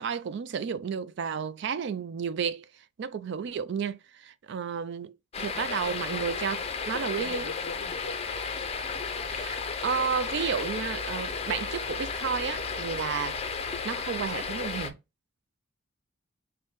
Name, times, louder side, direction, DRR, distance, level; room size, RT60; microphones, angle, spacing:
voice 1, 0.0-6.6 6.9-7.5 9.3-13.4 13.8-15.0, right 6 dB, 55° right, 0.3 m, -32 dB
sound 1, 5.3-14.9, left 5 dB, 30° left, 0.5 m, -33 dB
voice 2, 5.5-6.6 7.0-8.2, left 4 dB, 75° left, 0.5 m, -43 dB
5.7 x 2.1 x 3.1 m
head